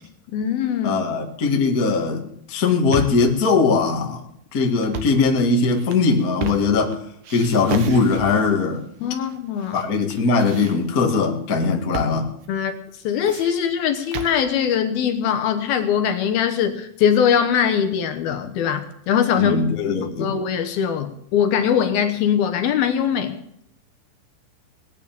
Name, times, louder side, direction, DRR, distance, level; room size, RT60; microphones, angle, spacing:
voice 1, 0.3-1.0 9.0-9.8 12.5-12.7 13.0-19.6 20.2-23.4, left 8 dB, 70° left, 7 dB, 2.5 m, -21 dB
voice 2, 0.8-4.2 4.5-7.0 7.3-8.8 9.7-12.3 19.3-20.3, left 4 dB, 85° left, 1 dB, 0.7 m, -20 dB
sound 1, 2.5-3.3 4.8-5.2 5.8-6.9 7.2-8.5 9.3-9.8 10.1-11.1 11.9-12.2 12.4-12.5 13.0-14.4, right 5 dB, 70° right, 1.8 m, -32 dB
20.5 x 9.1 x 7.1 m, 0.73 s
omnidirectional pair, 5.5 m